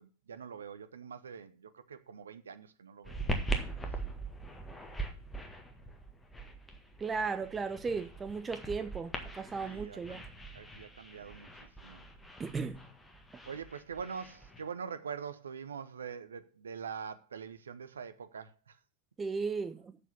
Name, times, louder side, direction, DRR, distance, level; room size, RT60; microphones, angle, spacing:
voice 1, 0.0-3.3 9.6-10.3 10.5-11.5 11.8-12.0 13.5-18.8, right 6 dB, 70° right, 0.8 m, -44 dB
sound 1, 3.0-14.6, right 2 dB, 10° left, 1.7 m, -41 dB
voice 2, 7.0-10.2 12.4-12.9 19.2-20.0, right 4 dB, 15° right, 0.6 m, -36 dB
7.4 x 6.7 x 7.2 m
figure-of-eight pair, 90°, 0 cm